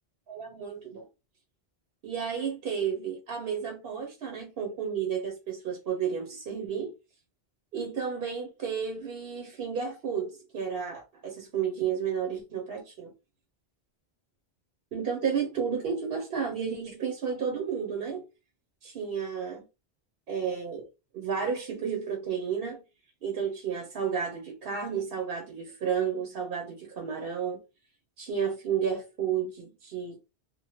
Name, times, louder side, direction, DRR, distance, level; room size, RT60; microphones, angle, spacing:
voice 1, 0.3-1.1 2.0-6.9 7.7-13.1 14.9-18.2 18.8-19.6 20.3-20.9 21.1-22.8 23.2-27.6 28.2-30.3, right 7 dB, 65° right, 0.9 m, -32 dB
2.9 x 2.1 x 3.0 m
omnidirectional pair, 1.1 m